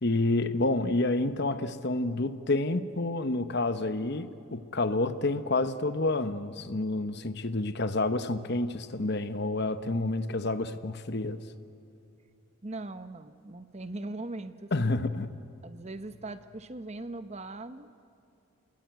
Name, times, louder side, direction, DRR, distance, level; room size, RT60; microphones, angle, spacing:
voice 1, 0.0-11.4 14.7-15.4, left 2 dB, 50° left, 1.0 m, -29 dB
voice 2, 12.6-15.2 15.6-17.9, right 2 dB, 30° right, 0.9 m, -40 dB
30.0 x 21.0 x 9.3 m
head